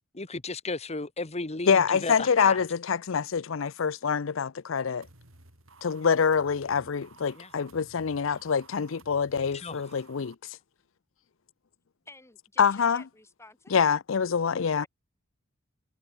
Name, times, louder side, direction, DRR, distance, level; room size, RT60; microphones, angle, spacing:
voice 1, 0.1-2.6 7.4-7.5 9.5-9.8, left 3 dB, 30° left, 1.3 m, -34 dB
voice 2, 1.7-5.1 5.8-10.6 12.6-13.0 13.7-14.9, left 6 dB, 75° left, 0.6 m, -25 dB
sound 1, 5.0-10.4, right 3 dB, 85° right, 4.9 m, -55 dB
voice 3, 12.1-13.8 14.8-14.9, left 2 dB, 15° left, 4.6 m, -52 dB
head